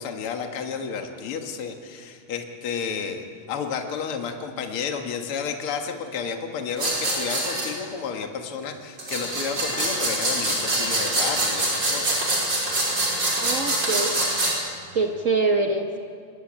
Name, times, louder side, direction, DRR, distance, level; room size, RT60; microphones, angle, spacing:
voice 1, 0.0-12.2, left 6 dB, 50° left, 4 dB, 2.3 m, -31 dB
sound 1, 6.8-7.7 9.0-14.5, right 1 dB, 35° right, 6.1 m, -24 dB
voice 2, 13.4-14.1 14.9-16.0, right 3 dB, 85° right, 3 dB, 0.7 m, -24 dB
23.5 x 19.0 x 8.8 m, 2.1 s
omnidirectional pair, 3.4 m